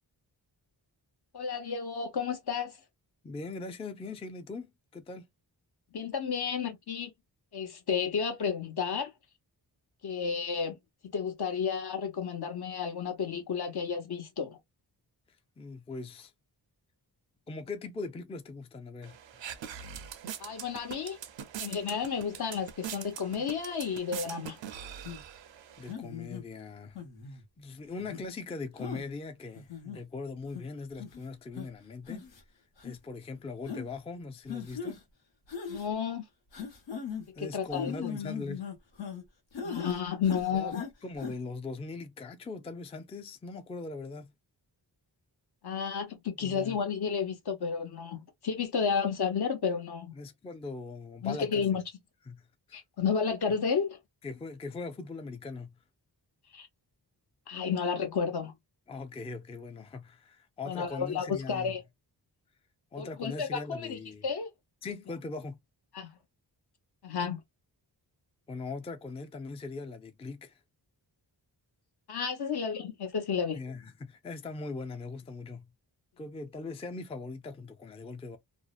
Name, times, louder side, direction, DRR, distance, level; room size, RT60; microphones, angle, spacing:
voice 1, 1.3-2.8 5.9-7.1 7.5-9.1 10.0-10.8 11.1-14.6 20.4-21.2 21.6-24.6 35.7-36.2 37.4-38.1 39.6-40.8 45.6-50.1 51.2-51.8 52.7-54.0 56.5-56.7 57.5-58.5 60.6-61.8 63.0-64.0 64.2-64.5 65.9-66.1 67.0-67.4 72.1-73.6, left 6 dB, 60° left, 0.8 m, -32 dB
voice 2, 3.2-5.3 15.6-16.3 17.5-19.5 25.8-27.0 27.3-32.3 32.8-35.0 37.3-38.7 40.5-40.7 41.0-44.3 46.4-46.8 50.1-51.7 52.2-52.5 54.2-55.7 58.9-61.8 62.9-64.2 64.8-65.6 68.5-70.6 73.5-75.7 76.2-78.4, left 3 dB, 15° left, 0.4 m, -40 dB
sound 1, 19.0-25.9, right 9 dB, 85° right, 0.6 m, -43 dB
sound 2, 25.0-25.2 25.9-26.4 27.0-27.4 28.0-28.2 28.8-29.1 29.5-30.0 30.5-30.6 31.0-31.2 31.6-31.7 32.1-32.4 32.8-32.9 33.7-33.9 34.5-35.0 35.5-35.9 36.5-37.3 37.7-39.2 39.5-40.0 40.2-40.9 41.2-41.3, left 6 dB, 85° left, 1.0 m, -39 dB
2.6 x 2.0 x 2.3 m
wide cardioid pair, 90°, 43 cm